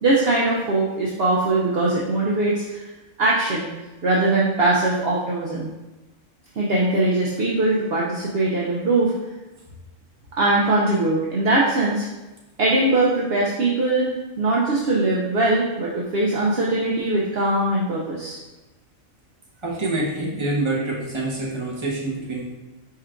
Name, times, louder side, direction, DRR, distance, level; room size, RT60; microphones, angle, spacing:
voice 1, 0.0-2.8 3.2-3.7 4.0-5.7 6.5-9.1 10.4-12.1 12.6-18.4, right 2 dB, 55° right, -4 dB, 0.8 m, -21 dB
voice 2, 19.6-22.5, right 2 dB, 25° right, -5 dB, 1.0 m, -26 dB
4.5 x 4.3 x 2.5 m, 1.1 s
omnidirectional pair, 1.4 m